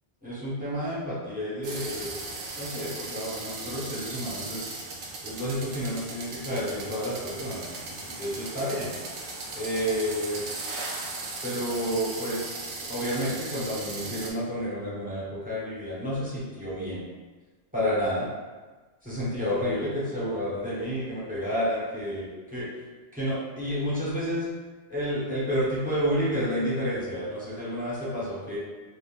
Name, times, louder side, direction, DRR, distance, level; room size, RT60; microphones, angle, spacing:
voice 1, 0.2-2.2 2.6-4.7 5.2-8.9 9.5-10.5 11.4-17.0 17.7-18.3 19.0-22.7 23.1-24.5 24.9-28.6, equal, 10° right, -10 dB, 0.9 m, -30 dB
sound 1, 1.6-14.3, right 2 dB, 85° right, 0.9 m, -37 dB
3.6 x 2.4 x 2.4 m, 1.3 s
omnidirectional pair, 1.1 m